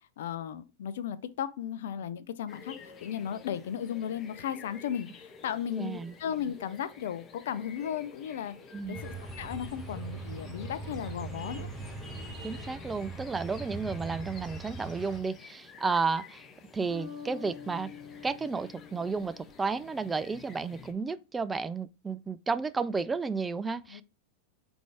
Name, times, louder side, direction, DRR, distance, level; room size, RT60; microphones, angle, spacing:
voice 1, 0.2-8.6 8.9-11.7 23.9-24.0, left 9 dB, 70° left, 0.5 m, -35 dB
sound 1, 2.5-20.9, left 5 dB, 30° left, 0.8 m, -51 dB
voice 2, 5.8-6.1 8.7-9.0 12.4-16.4 16.7-17.9 18.2-24.0, right 4 dB, 15° right, 0.4 m, -32 dB
sound 2, 8.9-15.2, right 3 dB, 5° left, 1.4 m, -41 dB
sound 3, 16.9-20.2, left 7 dB, 45° left, 2.1 m, -47 dB
3.7 x 3.5 x 3.4 m
hypercardioid pair, 100°, 0 cm